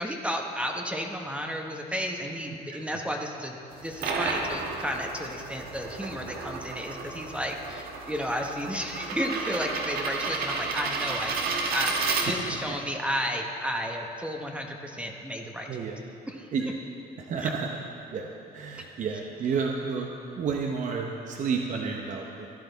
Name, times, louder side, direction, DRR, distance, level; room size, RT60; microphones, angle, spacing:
voice 1, 0.0-15.7 16.3-16.5 17.3-17.5 18.7-18.8 19.1-19.2, equal, 5° right, 2 dB, 0.9 m, -33 dB
sound 1, 3.7-12.7, right 4 dB, 65° right, 1.4 m, -32 dB
voice 2, 17.3-17.7 18.1-18.3 18.5-20.1 20.4-22.5, right 5 dB, 50° right, 1 dB, 0.8 m, -30 dB
15.0 x 10.5 x 4.0 m, 2.8 s
cardioid pair, 110°, 17 cm